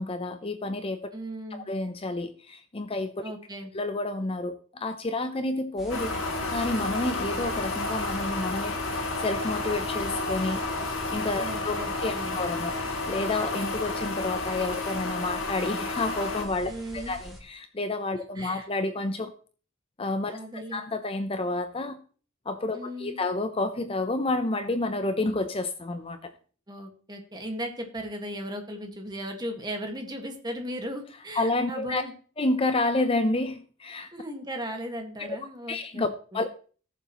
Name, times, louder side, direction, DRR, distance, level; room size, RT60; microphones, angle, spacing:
voice 1, 0.0-1.1 1.5-3.1 3.7-6.2 6.5-10.6 11.1-12.7 13.1-19.3 20.0-20.4 20.7-22.0 22.5-26.3 31.3-32.0 32.4-34.1 35.2-35.4 35.7-36.1 36.3-36.5, left 2 dB, 25° left, 0.6 m, -29 dB
voice 2, 1.1-1.7 3.2-3.7 11.4-12.4 16.7-17.1 18.1-18.6 20.3-20.8 22.7-23.2 26.7-32.1 34.1-36.4, equal, 20° right, 1.7 m, -37 dB
sound 1, 5.8-17.4, equal, ahead, 2.9 m, -46 dB
sound 2, 5.9-16.4, left 2 dB, 65° left, 2.5 m, -31 dB
17.5 x 7.0 x 3.0 m
head